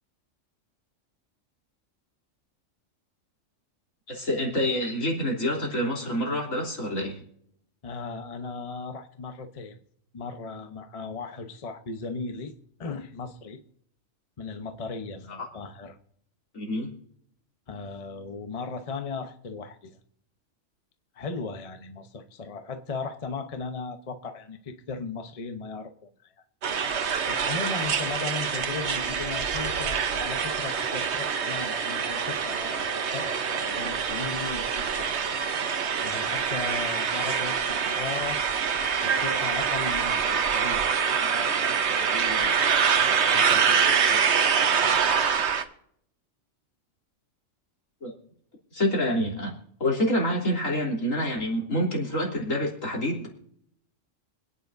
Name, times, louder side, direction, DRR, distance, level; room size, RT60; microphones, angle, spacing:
voice 1, 4.1-7.2 15.4-15.5 16.5-16.9 48.0-48.1 48.7-49.5 49.8-53.4, equal, 80° left, -2 dB, 3.6 m, -27 dB
voice 2, 7.8-9.8 10.1-12.5 12.8-13.6 14.4-16.0 17.7-20.0 21.1-26.3 27.3-35.1 36.0-38.4 39.0-44.2, left 4 dB, 30° left, 7 dB, 0.9 m, -37 dB
sound 1, 26.6-45.6, right 6 dB, 60° right, 1.2 m, -25 dB
25.5 x 9.4 x 2.6 m, 0.68 s
omnidirectional pair, 1.3 m